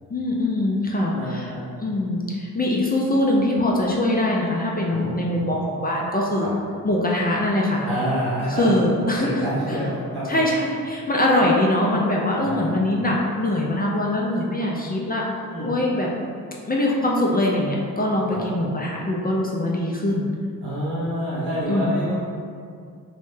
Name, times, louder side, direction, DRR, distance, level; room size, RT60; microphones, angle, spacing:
voice 1, 0.1-1.5 1.8-6.5 6.8-7.9 8.6-9.3 10.3-15.3 15.6-16.1 16.7-20.3 21.7-22.0, left 1 dB, 25° left, -3 dB, 0.4 m, -22 dB
voice 2, 1.1-1.6 4.9-5.2 6.4-6.5 7.8-8.8 9.2-10.4 11.3-11.4 12.4-12.7 15.5-15.7 18.3-18.5 20.6-22.1, equal, 80° right, -9 dB, 1.5 m, -27 dB
3.0 x 2.1 x 3.2 m, 2.2 s
cardioid pair, 55°, 39 cm